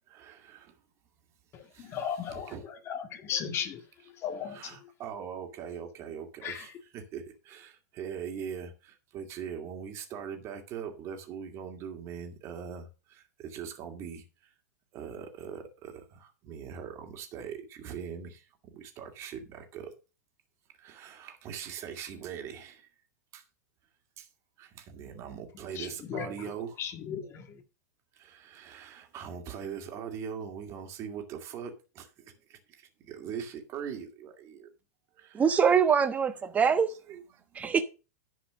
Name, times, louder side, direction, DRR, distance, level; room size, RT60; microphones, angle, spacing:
voice 1, 0.1-0.8 1.7-2.6 4.4-14.5 14.9-18.4 18.7-19.9 20.8-22.9 23.3-23.4 24.2-24.3 24.6-26.8 28.1-34.7 35.2-35.4 37.1-37.7, right 7 dB, 30° right, 2.2 m, -41 dB
voice 2, 1.5-3.8 4.2-4.8 6.4-6.7 25.8-26.5 26.8-27.5, left 8 dB, 30° left, 1.8 m, -36 dB
voice 3, 35.3-36.9 37.5-37.8, right 6 dB, 15° right, 1.1 m, -24 dB
10.5 x 4.9 x 6.2 m
hypercardioid pair, 140°, 9 cm